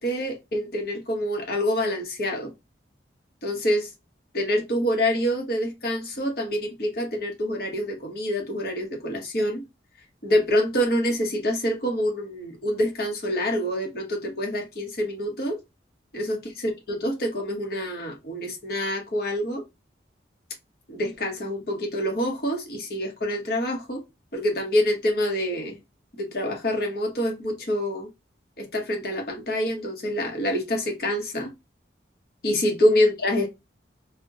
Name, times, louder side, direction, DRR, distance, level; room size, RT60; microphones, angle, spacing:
voice 1, 0.0-2.5 3.4-3.9 4.3-9.6 10.2-15.6 16.1-19.6 20.9-24.0 24.3-25.8 26.2-28.1 28.6-31.5 32.4-33.5, equal, 55° left, 0.9 m, -26 dB
2.8 x 2.1 x 3.5 m
head